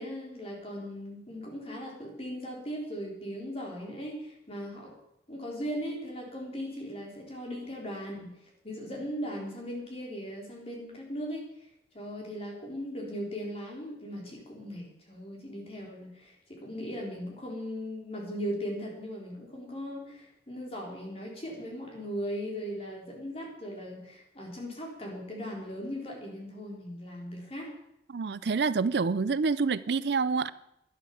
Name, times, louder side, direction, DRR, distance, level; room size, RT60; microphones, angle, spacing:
voice 1, 0.0-4.9 5.3-8.3 8.6-11.4 11.9-27.7, equal, 35° left, -1 dB, 4.0 m, -38 dB
voice 2, 28.1-30.5, right 4 dB, 65° right, 16 dB, 0.5 m, -27 dB
12.0 x 11.0 x 7.0 m, 0.81 s
head